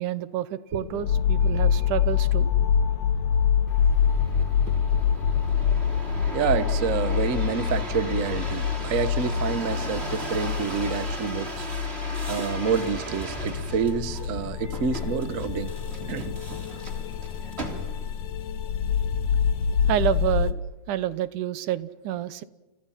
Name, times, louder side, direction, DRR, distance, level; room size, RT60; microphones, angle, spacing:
voice 1, 0.0-2.5 17.7-17.8 19.9-20.6 20.9-22.4, right 11 dB, 85° right, 15 dB, 2.6 m, -28 dB
sound 1, 0.8-20.5, left 7 dB, 70° left, 2.3 m, -26 dB
sound 2, 3.7-18.2 18.8-19.3, right 2 dB, 20° right, 3.1 m, -37 dB
voice 2, 6.3-11.6 12.3-15.7 16.1-16.3, right 6 dB, 65° right, 13 dB, 0.8 m, -28 dB
30.0 x 29.5 x 5.8 m, 1.1 s
omnidirectional pair, 3.5 m